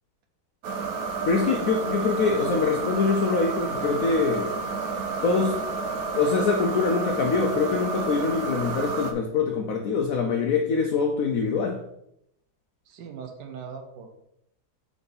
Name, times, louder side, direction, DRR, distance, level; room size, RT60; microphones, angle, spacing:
sound 1, 0.6-9.1, right 4 dB, 65° right, 1.1 m, -30 dB
voice 1, 1.3-4.5 5.2-5.6 6.1-11.8, left 4 dB, 65° left, 3 dB, 1.0 m, -24 dB
voice 2, 12.8-14.2, right 6 dB, 90° right, 5 dB, 1.3 m, -40 dB
4.9 x 4.1 x 5.3 m, 0.78 s
omnidirectional pair, 1.9 m